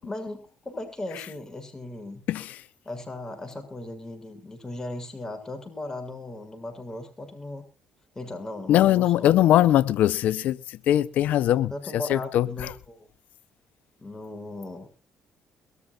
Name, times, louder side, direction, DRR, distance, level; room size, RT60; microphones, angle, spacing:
voice 1, 0.0-2.2 2.9-7.6 8.1-9.4 11.7-13.1 14.0-14.9, left 2 dB, 20° left, 6.8 m, -37 dB
voice 2, 8.7-11.7 12.1-12.7, left 12 dB, 75° left, 0.8 m, -21 dB
23.5 x 13.5 x 2.5 m
supercardioid pair, 75°, 3 cm